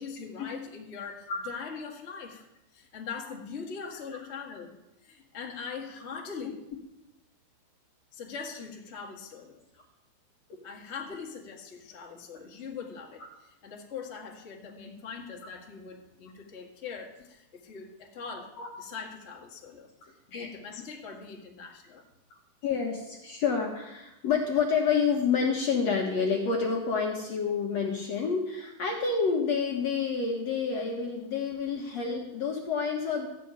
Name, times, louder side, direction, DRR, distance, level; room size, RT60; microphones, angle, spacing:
voice 1, 0.0-2.4 2.7-4.7 5.0-6.5 8.1-9.6 10.6-13.2 13.6-18.5 18.8-19.9 20.3-22.0, left 5 dB, 35° left, -1 dB, 1.0 m, -41 dB
voice 2, 22.6-33.3, left 5 dB, 55° left, 0 dB, 1.9 m, -28 dB
14.5 x 6.9 x 8.9 m, 0.91 s
omnidirectional pair, 4.6 m